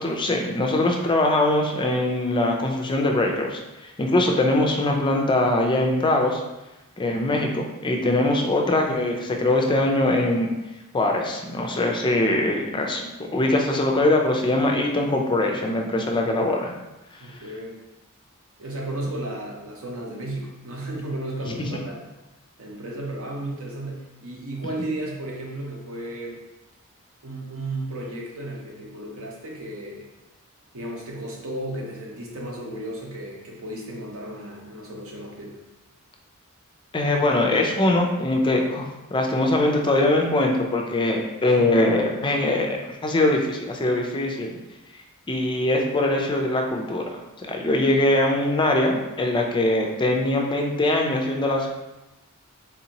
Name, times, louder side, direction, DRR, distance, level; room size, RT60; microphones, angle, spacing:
voice 1, 0.0-3.6 4.0-6.4 7.0-10.5 10.9-13.0 13.3-16.7 21.5-21.8 36.9-44.6 45.3-47.0 47.4-51.7, left 2 dB, 20° left, 1 dB, 0.4 m, -22 dB
voice 2, 17.2-17.8 18.6-22.1 22.6-26.4 27.2-30.1 30.7-35.6 41.6-41.7, right 1 dB, 65° right, -2 dB, 0.8 m, -34 dB
3.6 x 2.7 x 2.8 m, 1.0 s
head